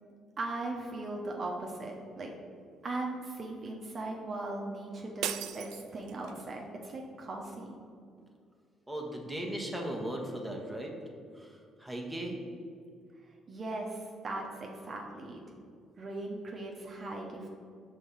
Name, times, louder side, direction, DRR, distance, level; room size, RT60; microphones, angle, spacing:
voice 1, 0.4-2.3 2.8-7.7 13.5-15.4 16.0-17.5, right 2 dB, 45° right, 0 dB, 0.9 m, -38 dB
sound 1, 5.2-6.5, right 10 dB, 75° right, 0.3 m, -38 dB
voice 2, 8.9-10.9 11.3-12.4, right 1 dB, 5° right, -1 dB, 1.3 m, -37 dB
5.3 x 3.7 x 5.6 m, 2.3 s
supercardioid pair, 60°, 0 cm